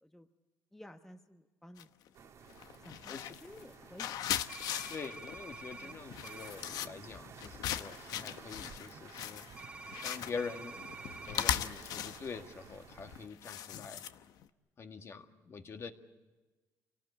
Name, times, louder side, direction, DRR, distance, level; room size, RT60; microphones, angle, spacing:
voice 1, 0.7-1.9 2.8-4.2 5.8-5.9, left 1 dB, 5° left, 6 dB, 1.0 m, -53 dB
sound 1, 1.8-2.1 2.5-14.5, left 10 dB, 75° left, 0.9 m, -39 dB
sound 2, 2.1-13.3, right 7 dB, 55° right, 1.5 m, -54 dB
sound 3, 4.5-5.9 6.2-6.5 9.6-11.5, right 3 dB, 15° right, 1.7 m, -48 dB
voice 2, 4.9-9.5 10.0-10.8 11.2-14.0 14.8-15.9, left 5 dB, 45° left, 6 dB, 1.9 m, -45 dB
27.0 x 18.5 x 8.5 m, 1.2 s
cardioid pair, 100°, 6 cm